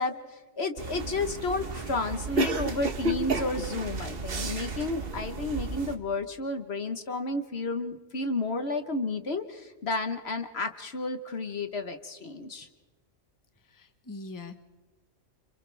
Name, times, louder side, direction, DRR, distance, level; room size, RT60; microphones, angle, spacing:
voice 1, 0.0-12.7, left 2 dB, 50° left, 8 dB, 1.4 m, -32 dB
sound 1, 0.8-6.0, right 2 dB, 45° right, 1.4 m, -32 dB
voice 2, 13.6-14.5, left 3 dB, 15° left, 8 dB, 1.0 m, -42 dB
29.0 x 27.0 x 3.4 m, 1.3 s
omnidirectional pair, 1.4 m